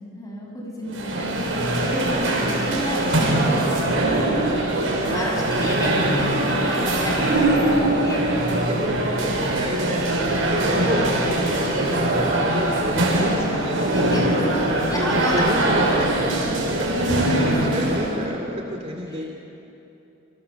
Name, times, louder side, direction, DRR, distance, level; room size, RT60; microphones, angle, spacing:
voice 1, 0.2-4.0 5.0-8.4 10.2-10.6 13.9-14.6 14.9-15.6 19.1-19.3, left 1 dB, 20° left, -1 dB, 6.6 m, -31 dB
sound 1, 0.9-18.2, right 1 dB, 85° right, 6.0 m, -22 dB
voice 2, 4.9-5.6 7.4-7.5 8.7-8.9 9.2-10.1 10.5-13.9 14.7-16.3 16.8-19.2, equal, 35° right, 1 dB, 2.5 m, -31 dB
29.0 x 25.0 x 7.1 m, 2.8 s
head